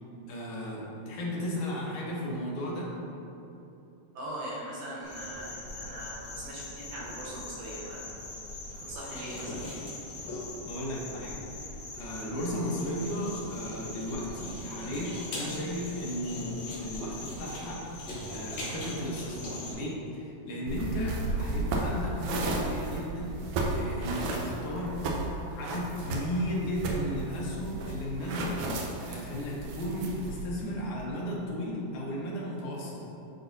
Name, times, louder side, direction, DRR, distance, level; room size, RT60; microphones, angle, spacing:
voice 1, 0.3-2.9 10.7-23.4 23.7-25.2 25.5-28.6 29.0-33.1, equal, 85° left, -4 dB, 2.6 m, -35 dB
voice 2, 4.2-8.1 8.8-9.6, right 1 dB, 70° right, -6 dB, 2.0 m, -40 dB
sound 1, 5.0-19.7, left 2 dB, 65° left, 2.4 m, -41 dB
sound 2, 20.7-30.4, right 2 dB, 90° right, 2.2 m, -34 dB
9.7 x 4.0 x 2.7 m, 3.0 s
omnidirectional pair, 3.4 m